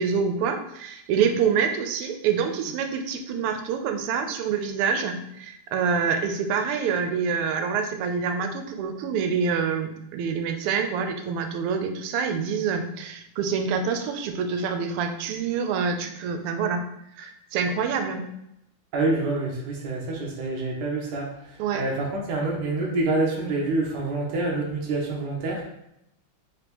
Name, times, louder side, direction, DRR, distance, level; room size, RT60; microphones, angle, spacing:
voice 1, 0.0-16.8 17.2-18.3 21.6-21.8, right 6 dB, 90° right, 6 dB, 1.5 m, -26 dB
voice 2, 18.9-21.3 21.7-25.7, right 2 dB, 65° right, -2 dB, 1.2 m, -27 dB
4.0 x 3.4 x 2.9 m, 0.81 s
omnidirectional pair, 2.4 m